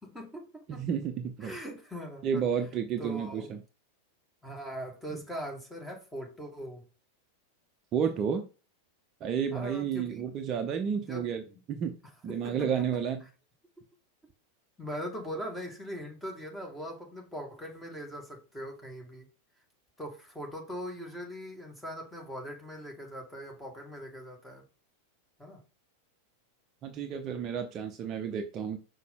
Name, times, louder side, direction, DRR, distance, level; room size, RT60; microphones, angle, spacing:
voice 1, 0.0-0.8 1.4-2.4 3.0-3.5 4.4-6.8 9.5-10.2 11.1-11.6 12.4-13.0 14.8-19.3 20.0-24.6 25.4-25.6, equal, 5° left, 1 dB, 2.2 m, -41 dB
voice 2, 0.7-1.6 2.2-3.6 5.1-5.2 7.9-8.4 9.2-12.0 12.2-13.3 26.8-28.8, right 7 dB, 30° right, 5 dB, 0.8 m, -31 dB
5.8 x 5.4 x 3.8 m, 0.33 s
figure-of-eight pair, 90°, 0 cm